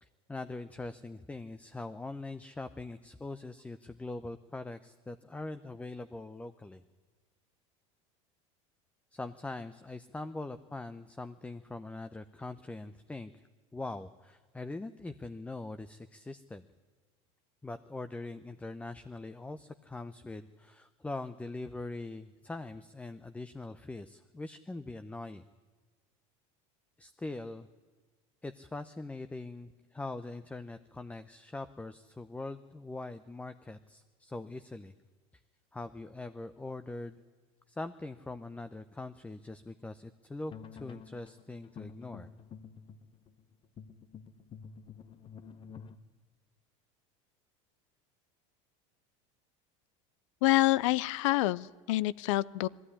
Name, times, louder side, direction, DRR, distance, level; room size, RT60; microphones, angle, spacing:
voice 1, 0.0-6.8 9.1-13.4 13.7-16.6 17.6-25.4 27.0-27.7 28.4-34.9 35.7-37.2 37.7-42.3, left 2 dB, 10° left, 11 dB, 0.6 m, -42 dB
sound 1, 40.5-46.0, left 6 dB, 30° left, 1.0 m, -49 dB
voice 2, 50.4-52.7, left 17 dB, 75° left, 21 dB, 0.6 m, -27 dB
19.0 x 15.0 x 9.9 m, 1.4 s
supercardioid pair, 110°, 16 cm